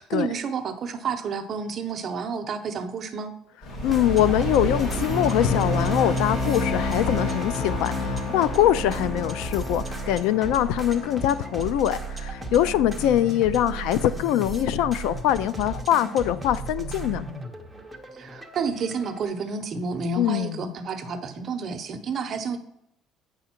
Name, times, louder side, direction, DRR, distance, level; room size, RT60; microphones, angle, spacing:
voice 1, 0.0-3.3 18.1-22.6, right 5 dB, 40° right, 7 dB, 0.7 m, -30 dB
sound 1, 3.6-14.1, left 1 dB, 60° left, 2.4 m, -30 dB
voice 2, 3.8-17.3 20.2-20.7, left 12 dB, 90° left, 16 dB, 0.4 m, -23 dB
sound 2, 3.8-19.2, right 3 dB, ahead, 0.8 m, -35 dB
8.2 x 5.0 x 4.4 m, 0.79 s
cardioid pair, 155°, 0 cm